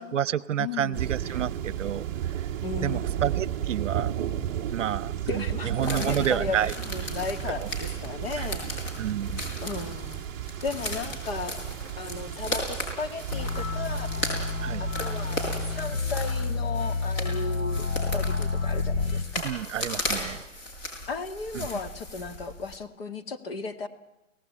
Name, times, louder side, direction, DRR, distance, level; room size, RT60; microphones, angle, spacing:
voice 1, 0.0-2.4 2.8-4.2 4.7-6.7 7.5-7.7 8.4-8.5 9.0-9.5 14.6-14.9 19.4-20.4 21.5-21.7, right 10 dB, 70° right, 20 dB, 0.8 m, -30 dB
voice 2, 0.6-1.4 2.6-3.3 5.2-8.7 9.6-10.3 10.6-11.6 12.0-14.1 14.8-19.5 21.1-23.9, left 4 dB, 50° left, 7 dB, 2.0 m, -35 dB
sound 1, 0.9-15.9, right 10 dB, 15° right, 0.9 m, -34 dB
sound 2, 5.8-22.8, left 1 dB, 30° left, 5.8 m, -36 dB
sound 3, 13.3-19.2, left 3 dB, 85° left, 3.2 m, -29 dB
30.0 x 18.0 x 8.7 m, 0.97 s
hypercardioid pair, 165°, 38 cm